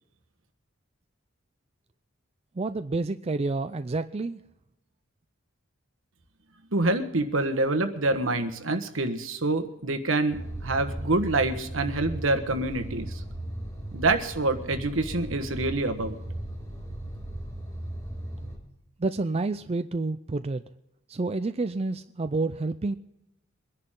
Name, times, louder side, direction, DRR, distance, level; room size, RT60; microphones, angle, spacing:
voice 1, 2.6-4.4 19.0-20.6 21.1-23.0, right 3 dB, 30° right, 9 dB, 0.5 m, -29 dB
voice 2, 6.7-13.2 13.9-16.2, right 2 dB, 70° right, 8 dB, 1.4 m, -26 dB
sound 1, 10.3-18.6, right 1 dB, 15° left, 4.7 m, -37 dB
24.0 x 10.5 x 3.8 m, 0.88 s
head